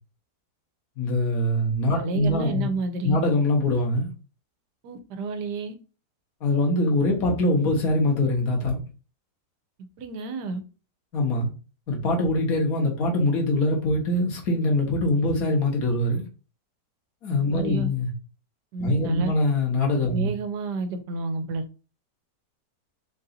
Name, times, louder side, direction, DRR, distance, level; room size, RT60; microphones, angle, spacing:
voice 1, 1.0-2.7 3.0-4.1 6.4-8.8 11.1-11.5 11.9-16.3 17.2-18.1 18.8-20.3, left 2 dB, 60° left, 1.6 m, -23 dB
voice 2, 2.0-3.2 4.8-5.7 10.0-10.6 17.5-17.9 18.7-19.3 20.1-21.6, right 3 dB, 80° right, 1.3 m, -30 dB
3.9 x 2.7 x 3.8 m
omnidirectional pair, 1.8 m